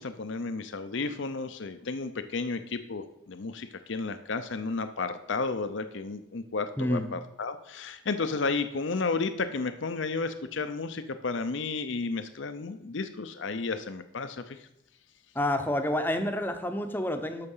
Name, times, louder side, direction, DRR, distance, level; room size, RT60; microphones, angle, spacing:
voice 1, 0.0-14.7, left 4 dB, 65° left, 10 dB, 0.6 m, -32 dB
voice 2, 15.3-17.5, left 1 dB, 10° left, 7 dB, 0.8 m, -28 dB
13.5 x 5.9 x 5.5 m, 0.80 s
head